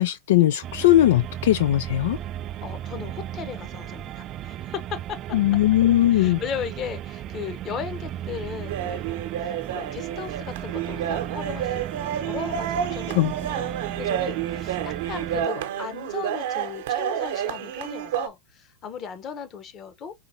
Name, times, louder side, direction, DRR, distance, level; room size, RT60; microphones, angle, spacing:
voice 1, 0.0-2.2 5.3-6.4 13.1-13.3, left 14 dB, 75° left, 0.3 m, -19 dB
sound 1, 0.6-15.5, right 11 dB, 35° right, 0.3 m, -35 dB
voice 2, 2.6-5.4 6.1-20.1, left 7 dB, 35° left, 1.0 m, -36 dB
sound 2, 8.7-18.3, right 10 dB, 70° right, 0.9 m, -30 dB
4.9 x 3.0 x 2.8 m
hypercardioid pair, 120°, 0 cm